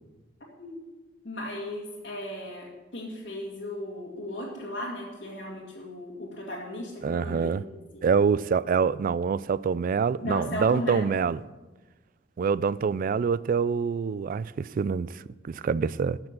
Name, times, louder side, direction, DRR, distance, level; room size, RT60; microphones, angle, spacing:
voice 1, 1.2-7.5 7.9-8.0 10.2-11.1, left 1 dB, 60° left, 2.1 m, -36 dB
voice 2, 7.0-7.6 8.0-11.4 12.4-15.1 15.5-16.2, right 6 dB, 50° right, 0.3 m, -25 dB
14.0 x 6.1 x 7.5 m
head